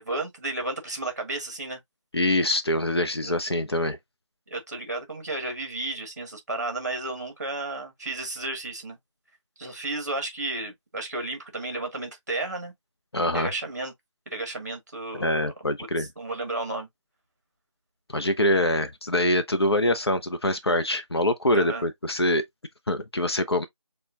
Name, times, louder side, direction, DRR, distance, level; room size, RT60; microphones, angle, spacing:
voice 1, 0.0-1.8 3.2-3.3 4.5-9.0 9.6-12.7 13.3-13.9 14.3-15.4 16.0-16.9 21.5-21.8, right 2 dB, 30° right, 1.4 m, -33 dB
voice 2, 2.1-4.0 13.1-13.5 15.2-16.1 18.1-22.4 22.9-23.6, left 1 dB, 55° left, 0.8 m, -24 dB
6.5 x 2.4 x 2.3 m
figure-of-eight pair, 170°, 16 cm